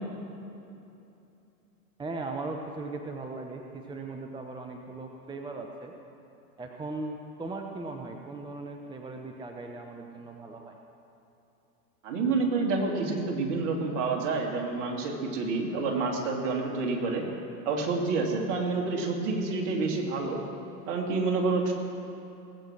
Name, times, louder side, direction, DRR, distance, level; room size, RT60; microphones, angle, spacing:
voice 1, 2.0-5.9 6.6-10.8, right 3 dB, 10° right, 3 dB, 0.8 m, -38 dB
voice 2, 12.0-17.2 17.6-20.4 20.9-21.7, right 3 dB, 50° right, 1 dB, 2.8 m, -28 dB
19.0 x 8.2 x 6.1 m, 2.8 s
hypercardioid pair, 95°, 46 cm